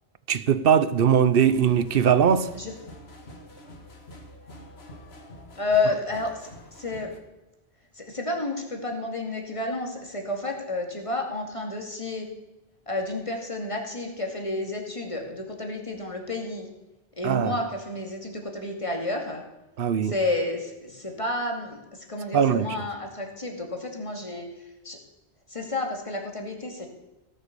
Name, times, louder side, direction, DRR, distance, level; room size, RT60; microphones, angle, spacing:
voice 1, 0.3-2.5 17.2-17.5 19.8-20.1 22.3-22.9, right 8 dB, 65° right, 1.0 m, -21 dB
sound 1, 1.4-7.2, left 1 dB, 80° left, 1.8 m, -46 dB
voice 2, 5.6-7.1 8.0-12.3 12.9-16.7 17.2-19.4 20.0-24.5 24.8-25.0 25.5-26.9, left 2 dB, 30° left, 2.4 m, -30 dB
17.0 x 7.9 x 6.8 m
omnidirectional pair, 1.0 m